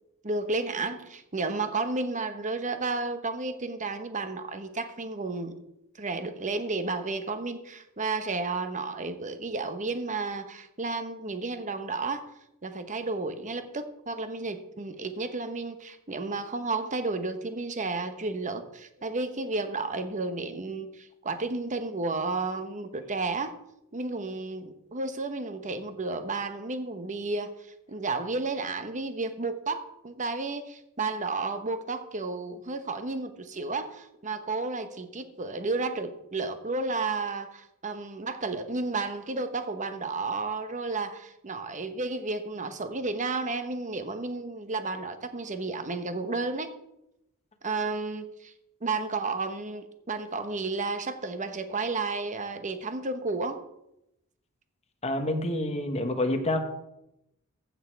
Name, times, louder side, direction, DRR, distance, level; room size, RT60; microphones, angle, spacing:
voice 1, 0.2-5.6 6.0-12.3 12.6-23.5 23.9-27.5 27.9-46.7 47.6-48.5 48.8-53.6, right 3 dB, 35° right, 9 dB, 1.0 m, -32 dB
voice 2, 55.0-56.6, left 1 dB, 30° left, 6 dB, 1.3 m, -27 dB
15.0 x 6.5 x 4.6 m, 0.86 s
head